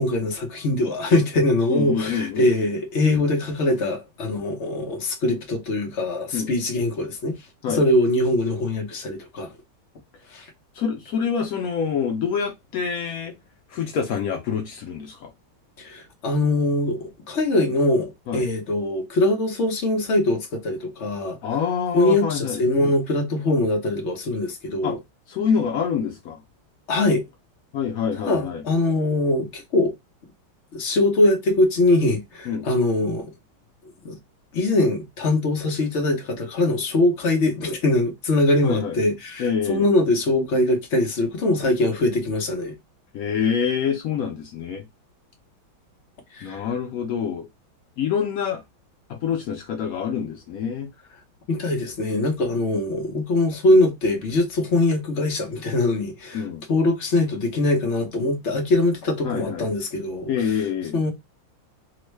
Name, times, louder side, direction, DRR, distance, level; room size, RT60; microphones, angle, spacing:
voice 1, 0.0-7.4 7.7-9.5 10.3-10.5 15.8-21.4 21.9-25.0 26.9-27.2 28.3-29.9 30.7-33.3 34.0-34.2 34.5-42.7 46.3-46.6 51.5-56.4 56.7-60.3 60.9-61.1, left 2 dB, 50° left, 0.8 m, -22 dB
voice 2, 1.7-2.5 6.3-6.5 7.6-7.8 10.7-13.3 13.7-15.3 18.3-18.5 21.4-22.6 24.8-25.0 25.3-26.4 27.7-28.6 32.5-32.7 38.6-39.0 39.4-39.9 43.1-44.9 46.4-47.5 48.0-48.6 49.1-50.9 56.3-56.6 59.2-59.7 60.3-61.0, left 7 dB, 85° left, 0.7 m, -26 dB
3.5 x 2.2 x 3.1 m
omnidirectional pair, 2.3 m